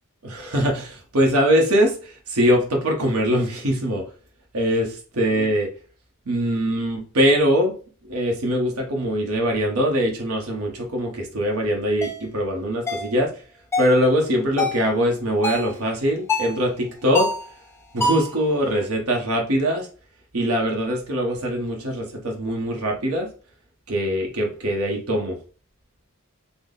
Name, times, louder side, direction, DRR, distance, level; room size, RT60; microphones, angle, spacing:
voice 1, 0.2-4.0 4.5-5.7 6.3-7.7 8.1-13.3 13.8-17.3 17.9-19.9 20.3-23.3 23.9-25.4, equal, 80° right, 0 dB, 0.9 m, -22 dB
sound 1, 12.0-12.2 12.9-13.1 13.7-14.0 14.6-14.8 15.4-15.7 16.3-16.6 17.1-17.5 18.0-18.4, left 2 dB, 10° left, 0.6 m, -25 dB
3.6 x 2.0 x 3.7 m, 0.38 s
head